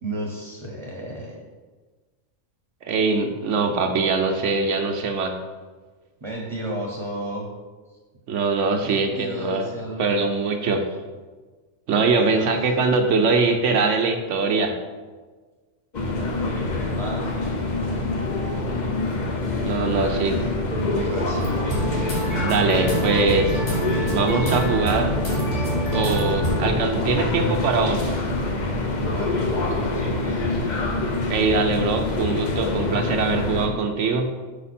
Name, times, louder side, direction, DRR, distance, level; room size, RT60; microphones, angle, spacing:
voice 1, 0.0-1.4 6.2-7.5 7.9-8.0 8.8-10.2 12.1-12.7 16.1-17.7 19.8-21.6 29.0-30.6, right 1 dB, 25° right, -1 dB, 0.8 m, -33 dB
voice 2, 2.8-5.3 8.3-9.7 10.0-10.9 11.9-14.8 19.6-20.4 22.4-23.6 24.1-25.2 25.9-28.1 31.3-34.3, right 4 dB, 80° right, 4 dB, 1.0 m, -22 dB
sound 1, 15.9-33.7, left 2 dB, 45° left, 0.8 m, -26 dB
sound 2, 21.4-26.7, right 1 dB, 90° left, 2.0 m, -27 dB
6.3 x 5.1 x 4.2 m, 1.4 s
omnidirectional pair, 1.3 m